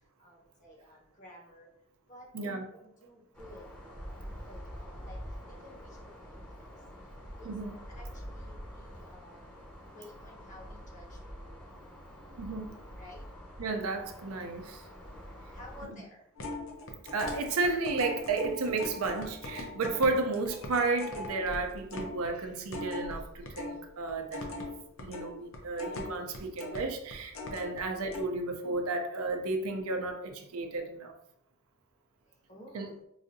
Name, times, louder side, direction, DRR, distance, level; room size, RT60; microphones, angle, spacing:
voice 1, 0.2-1.7 2.1-3.6 4.1-5.2 5.5-6.4 7.4-9.6 9.9-11.2 11.4-11.5 13.0-13.3 15.5-16.2 32.3-32.9, left 1 dB, 35° left, -2 dB, 0.9 m, -53 dB
sound 1, 3.3-15.9, equal, 5° left, 0.7 m, -46 dB
voice 2, 12.3-12.7 13.6-14.8 15.8-16.0 17.1-24.7 25.0-31.1 32.7-32.9, right 3 dB, 70° right, 5 dB, 0.5 m, -33 dB
sound 2, 16.4-23.8 24.1-27.8 28.1-28.2, left 2 dB, 60° left, 0.6 m, -40 dB
4.7 x 2.6 x 2.6 m, 0.75 s
head